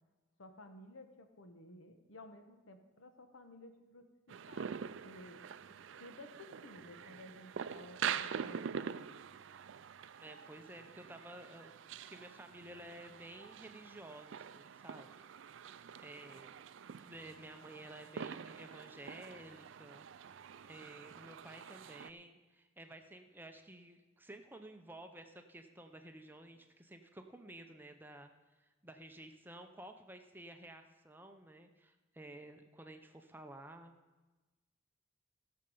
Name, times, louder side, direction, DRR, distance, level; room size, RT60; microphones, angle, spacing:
voice 1, 0.4-4.1 4.5-5.5 6.0-9.1, left 1 dB, 75° left, 7 dB, 1.1 m, -55 dB
sound 1, 4.3-22.1, right 7 dB, 65° right, 0.4 m, -45 dB
voice 2, 10.2-11.7 12.0-15.2 16.0-16.6 17.0-20.0 20.3-28.3 28.6-33.9, right 1 dB, 10° right, 6 dB, 0.6 m, -53 dB
16.0 x 6.8 x 5.4 m, 1.2 s
head